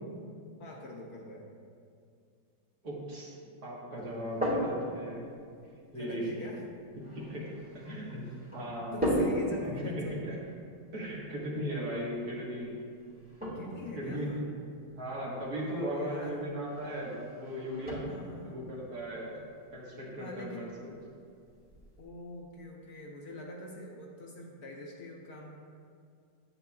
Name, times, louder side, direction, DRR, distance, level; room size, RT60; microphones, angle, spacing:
voice 1, 0.6-1.5 5.9-6.6 8.6-10.3 13.5-14.5 15.6-16.4 18.0-18.6 20.2-20.7 22.0-25.5, left 1 dB, 65° left, -1 dB, 1.1 m, -44 dB
voice 2, 2.8-3.3 3.6-5.3 5.9-6.4 7.1-8.2 8.5-8.9 9.6-10.4 10.9-12.8 14.0-14.4 15.0-18.0 18.4-19.4 19.7-20.7, equal, 55° right, -5 dB, 1.8 m, -37 dB
sound 1, 4.0-22.0, equal, 5° right, 1.5 m, -39 dB
9.5 x 8.0 x 2.3 m, 2.3 s
omnidirectional pair, 2.0 m